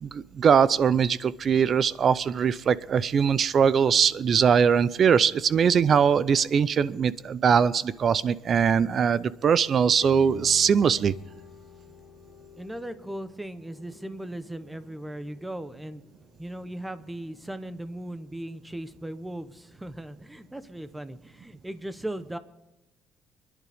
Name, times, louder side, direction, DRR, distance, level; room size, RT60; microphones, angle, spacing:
voice 1, 0.0-11.1, right 7 dB, 40° right, 18 dB, 0.5 m, -21 dB
sound 1, 10.0-20.5 20.7-21.5, left 7 dB, 50° left, 2.7 m, -50 dB
voice 2, 12.6-16.1 16.4-22.4, right 1 dB, 5° right, 12 dB, 0.8 m, -38 dB
25.5 x 11.0 x 3.5 m, 1.0 s
cardioid pair, 140°, 0 cm